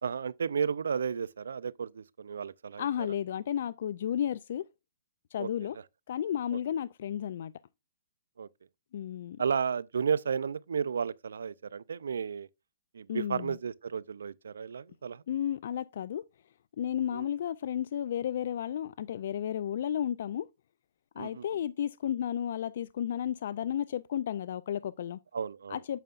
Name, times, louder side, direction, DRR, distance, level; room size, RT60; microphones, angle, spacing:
voice 1, 0.0-2.9 5.4-5.5 8.4-8.5 9.4-12.5 12.9-15.2 17.1-17.3 21.2-21.5 25.3-25.8, right 6 dB, 90° right, 0.4 m, -33 dB
voice 2, 2.8-4.7 5.3-5.8 6.1-7.5 8.9-9.4 13.1-13.6 15.3-16.2 16.8-20.5 21.2-25.2 25.7-26.0, left 10 dB, 60° left, 0.3 m, -33 dB
9.0 x 6.7 x 2.4 m
hypercardioid pair, 155°, 0 cm